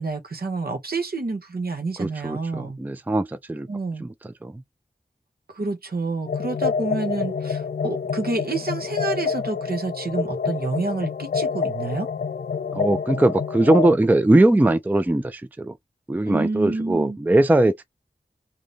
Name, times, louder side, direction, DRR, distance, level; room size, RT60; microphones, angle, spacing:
voice 1, 0.0-2.8 3.7-4.1 5.5-12.1 16.3-17.2, right 3 dB, 70° right, 1.0 m, -28 dB
voice 2, 2.0-3.7 4.0-4.1 4.4-4.6 12.7-15.7 16.1-17.9, right 1 dB, 10° right, 0.4 m, -20 dB
sound 1, 6.3-14.0, left 5 dB, 75° left, 0.4 m, -27 dB
2.8 x 2.6 x 3.3 m
wide cardioid pair, 55°, 16 cm